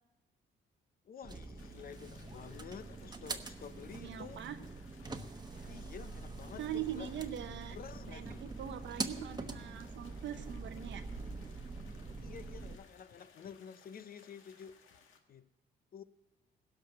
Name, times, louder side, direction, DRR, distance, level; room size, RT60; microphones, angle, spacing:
voice 1, 1.0-4.5 5.6-7.1 7.7-8.4 12.2-14.8 15.3-15.5 15.9-16.0, left 7 dB, 50° left, 0.7 m, -50 dB
sound 1, 1.2-12.8, right 3 dB, 20° right, 1.1 m, -44 dB
sound 2, 1.6-15.2, left 5 dB, 85° left, 1.5 m, -61 dB
voice 2, 3.9-4.6 6.6-7.8 8.1-11.0, right 10 dB, 70° right, 0.8 m, -42 dB
16.5 x 5.9 x 8.6 m
cardioid pair, 90°, 20 cm